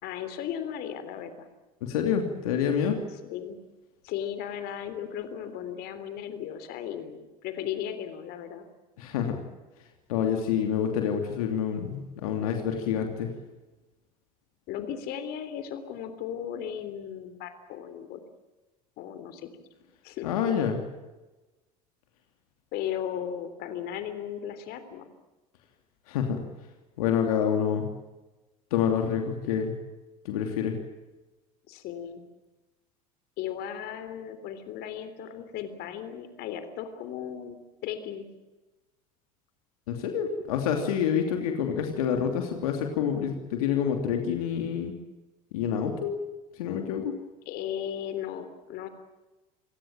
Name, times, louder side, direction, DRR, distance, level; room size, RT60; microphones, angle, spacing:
voice 1, 0.0-1.5 3.2-3.6 4.0-8.7 14.7-18.2 19.0-19.5 20.0-20.3 22.7-25.1 31.7-32.2 33.4-38.3 47.5-48.9, left 9 dB, 60° left, 10 dB, 3.4 m, -36 dB
voice 2, 1.8-3.0 9.0-9.4 10.1-13.3 20.2-20.8 26.1-26.4 27.0-27.9 28.7-29.7 30.2-30.8 39.9-44.9 45.5-46.1 46.6-47.1, left 8 dB, 80° left, 4 dB, 3.0 m, -27 dB
28.0 x 17.0 x 8.9 m, 1.1 s
hypercardioid pair, 75°, 18 cm